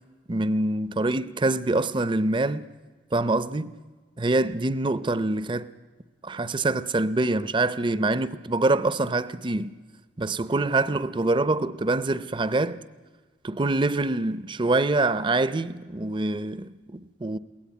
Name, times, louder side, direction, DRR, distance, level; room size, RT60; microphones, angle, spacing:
voice 1, 0.3-2.6 3.1-3.7 4.2-5.7 6.2-9.7 10.2-12.8 13.4-17.4, right 2 dB, 30° right, 0.6 m, -25 dB
22.0 x 17.5 x 9.3 m
head